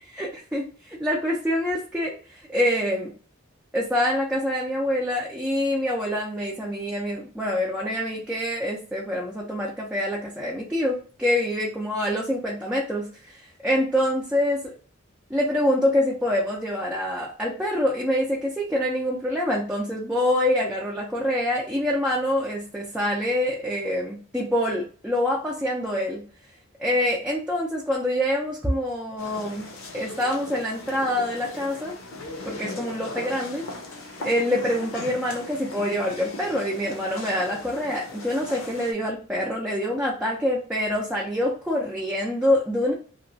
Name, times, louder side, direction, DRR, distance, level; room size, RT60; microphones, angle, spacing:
voice 1, 0.1-2.1 2.5-3.1 3.7-14.6 15.3-26.2 26.8-29.7 29.9-31.9 32.5-33.7 34.2-42.9, left 1 dB, 5° right, -4 dB, 0.5 m, -26 dB
sound 1, 29.2-38.9, left 2 dB, 75° left, 0.8 m, -38 dB
2.9 x 2.2 x 2.6 m, 0.41 s
head